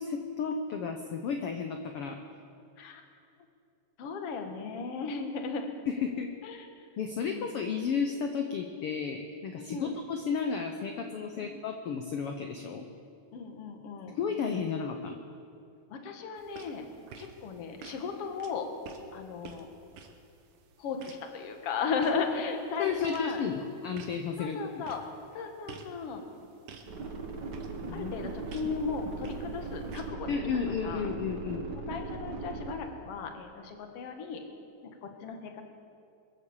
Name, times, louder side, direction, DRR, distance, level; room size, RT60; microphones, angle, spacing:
voice 1, 0.0-2.2 5.9-6.3 7.0-12.8 14.1-15.2 22.8-24.8 27.9-28.1 28.6-28.7 30.3-31.7, left 6 dB, 90° left, 5 dB, 1.2 m, -33 dB
voice 2, 4.0-5.7 6.4-6.9 7.2-7.4 9.6-9.9 11.4-11.6 13.3-14.2 15.9-16.9 17.2-18.7 19.1-19.7 20.8-23.4 24.4-25.0 25.3-26.2 27.9-30.3 30.7-31.1 31.5-34.4 34.8-35.7, left 5 dB, 55° left, 4 dB, 2.0 m, -36 dB
sound 1, 16.4-30.1, right 5 dB, 75° right, 2.6 m, -52 dB
sound 2, 26.9-32.7, right 3 dB, 45° right, 1.5 m, -39 dB
23.5 x 8.3 x 7.3 m, 2.5 s
omnidirectional pair, 3.8 m